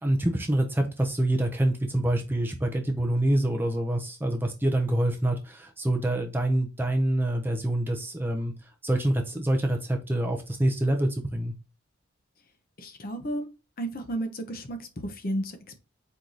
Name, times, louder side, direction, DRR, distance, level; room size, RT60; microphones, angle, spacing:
voice 1, 0.0-8.5 8.8-11.5, right 1 dB, 10° right, 0.5 m, -26 dB
voice 2, 12.8-13.5 13.8-15.8, right 1 dB, 45° left, 0.7 m, -33 dB
4.6 x 2.6 x 3.8 m
head